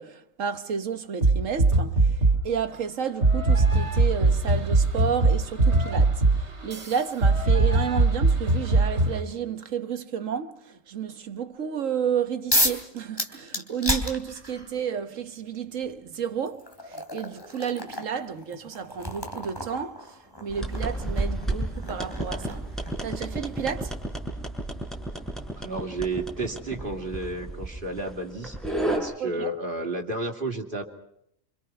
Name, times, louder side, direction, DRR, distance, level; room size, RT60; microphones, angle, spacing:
voice 1, 0.0-20.2 20.4-22.6 23.0-24.0 29.2-29.5, right 7 dB, 80° right, 1.6 m, -31 dB
sound 1, 1.2-2.5 3.2-9.2, right 3 dB, 60° right, 3.0 m, -21 dB
sound 2, 12.5-12.8 13.2-14.7 15.8-15.9 16.5-23.1, left 1 dB, 20° left, 3.0 m, -31 dB
sound 3, 20.5-29.0, right 1 dB, ahead, 6.0 m, -32 dB
voice 2, 25.6-28.5 28.9-30.8, right 2 dB, 40° right, 3.2 m, -32 dB
27.0 x 26.5 x 5.8 m
omnidirectional pair, 1.3 m